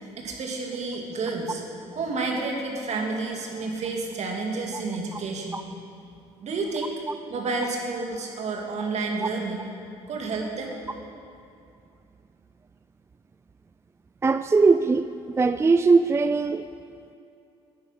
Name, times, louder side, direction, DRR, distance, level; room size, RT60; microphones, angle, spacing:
voice 1, 0.2-1.6 2.0-5.7 6.4-6.9 7.3-9.6 10.1-10.8, right 3 dB, 55° right, 1 dB, 2.2 m, -30 dB
voice 2, 14.2-15.1 15.3-16.7, right 4 dB, 20° right, 11 dB, 0.3 m, -20 dB
11.5 x 9.3 x 5.7 m, 2.6 s
supercardioid pair, 70°, 14 cm